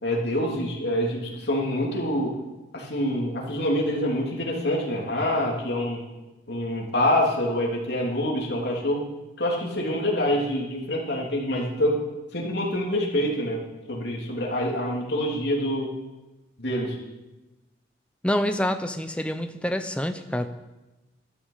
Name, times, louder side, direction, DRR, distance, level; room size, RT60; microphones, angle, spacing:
voice 1, 0.0-2.3 2.7-6.0 6.5-9.1 9.4-12.0 12.3-13.6 13.9-15.9 16.6-17.0, left 1 dB, 60° left, -2 dB, 3.4 m, -26 dB
voice 2, 18.2-20.5, left 1 dB, 5° left, 8 dB, 0.7 m, -27 dB
13.5 x 12.5 x 5.8 m, 1.1 s
head